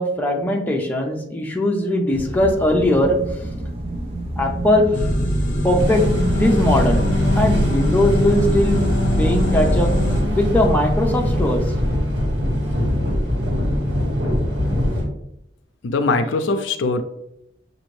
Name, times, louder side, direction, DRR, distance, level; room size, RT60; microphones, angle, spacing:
voice 1, 0.0-3.2 4.4-5.0 5.6-7.0 7.4-8.8 9.2-9.9 10.4-11.6, left 1 dB, 10° left, 0 dB, 0.6 m, -20 dB
sound 1, 2.1-10.4, right 1 dB, 35° right, 0.6 m, -30 dB
sound 2, 4.9-10.2, equal, 45° left, 0.7 m, -22 dB
sound 3, 5.8-15.1, left 1 dB, 70° right, 1.4 m, -22 dB
voice 2, 15.8-17.0, left 3 dB, 80° left, 8 dB, 0.4 m, -21 dB
6.2 x 2.5 x 3.2 m, 0.78 s
head